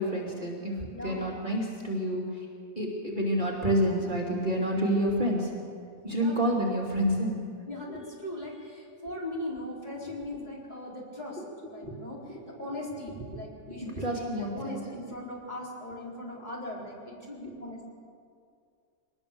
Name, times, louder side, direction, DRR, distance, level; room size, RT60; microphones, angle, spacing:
voice 1, 0.0-2.5 2.8-5.5 6.0-7.4 11.8-12.0 13.7-14.8, equal, 30° right, -3 dB, 2.8 m, -28 dB
voice 2, 0.9-1.4 6.2-6.4 7.7-18.0, left 1 dB, 25° left, -4 dB, 4.5 m, -39 dB
23.5 x 19.5 x 7.0 m, 2.3 s
omnidirectional pair, 1.8 m